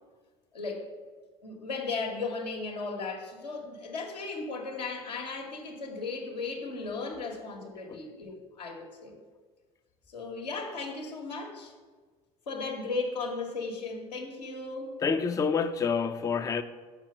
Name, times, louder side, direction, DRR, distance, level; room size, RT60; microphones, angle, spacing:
voice 1, 0.5-0.9 1.4-9.1 10.1-11.7 12.5-14.9, left 3 dB, 85° left, 1.4 m, -36 dB
voice 2, 15.0-16.6, left 5 dB, 15° left, 0.4 m, -28 dB
6.0 x 5.6 x 6.5 m
hypercardioid pair, 65°, 20 cm